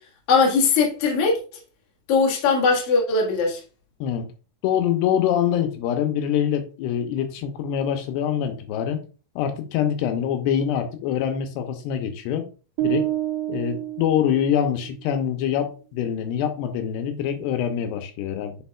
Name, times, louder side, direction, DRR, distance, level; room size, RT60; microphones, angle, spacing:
voice 1, 0.3-1.4 2.1-3.6, left 4 dB, 50° left, 1.9 m, -20 dB
voice 2, 4.6-9.0 9.4-12.5 12.8-13.1 13.5-18.6, left 9 dB, 85° left, 2.8 m, -24 dB
sound 1, 12.8-15.0, right 15 dB, 85° right, 2.7 m, -28 dB
9.6 x 4.3 x 2.3 m
omnidirectional pair, 4.8 m